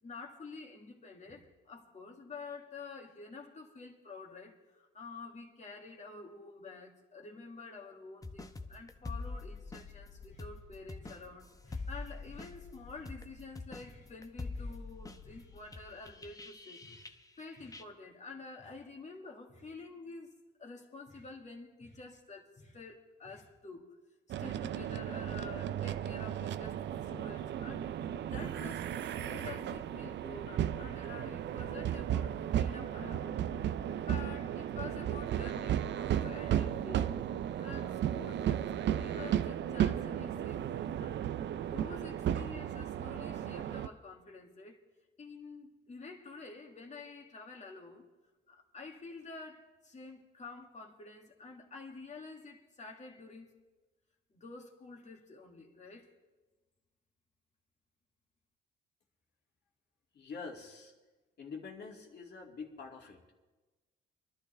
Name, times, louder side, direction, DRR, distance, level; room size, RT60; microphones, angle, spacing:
voice 1, 0.0-20.3 20.6-23.9 24.4-33.6 33.9-37.2 37.6-41.3 41.6-44.8 45.2-48.1 48.5-53.5 54.3-56.1, left 3 dB, 35° left, 2.1 m, -49 dB
sound 1, 8.2-17.4 17.7-17.8, left 3 dB, 15° left, 0.9 m, -45 dB
sound 2, 24.3-43.9, right 10 dB, 65° right, 0.6 m, -34 dB
voice 2, 60.1-60.9 61.4-63.3, left 4 dB, 55° left, 2.5 m, -46 dB
24.0 x 11.5 x 3.4 m
cardioid pair, 90°, 20 cm